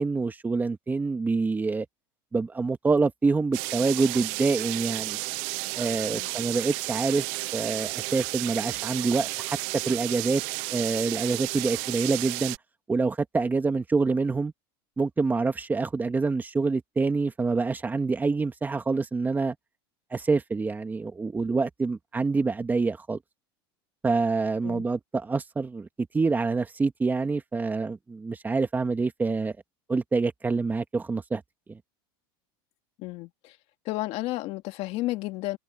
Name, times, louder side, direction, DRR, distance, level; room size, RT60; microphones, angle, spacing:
voice 1, 0.0-1.9 2.3-5.2 5.7-7.3 7.5-10.4 10.7-12.6 12.9-14.5 15.0-19.6 20.1-23.2 24.0-25.9 26.1-29.5 29.9-31.4, right 4 dB, 15° right, 2.0 m, -26 dB
sound 1, 3.5-12.6, right 27 dB, 60° right, 0.5 m, -32 dB
voice 2, 33.0-33.6 33.9-35.6, left 18 dB, 55° left, 2.1 m, -32 dB
supercardioid pair, 130°, 13 cm